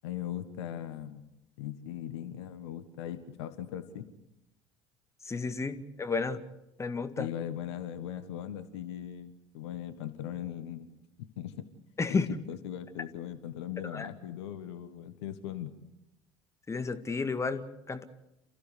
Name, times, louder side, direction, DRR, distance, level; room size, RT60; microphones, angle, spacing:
voice 1, 0.0-1.3 1.6-4.1 7.2-10.9 11.2-11.7 12.1-15.7, left 11 dB, 65° left, 10 dB, 1.5 m, -39 dB
voice 2, 5.2-6.4 6.8-7.3 12.0-12.3 13.9-14.1 16.7-18.0, left 4 dB, 20° left, 9 dB, 2.0 m, -32 dB
28.5 x 15.0 x 8.4 m, 0.91 s
figure-of-eight pair, 65°, 15 cm